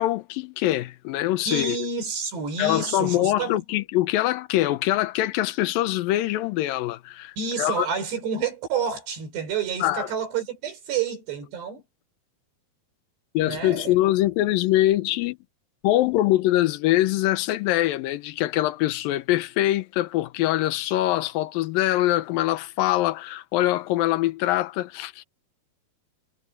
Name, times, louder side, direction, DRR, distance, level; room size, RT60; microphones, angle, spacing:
voice 1, 0.0-1.8 2.6-7.9 9.8-10.1 13.3-15.4 15.8-25.2, left 15 dB, 75° left, 2.3 m, -23 dB
voice 2, 1.5-3.6 7.4-11.8 13.5-14.0, right 6 dB, 85° right, 7.4 m, -29 dB
omnidirectional pair, 4.7 m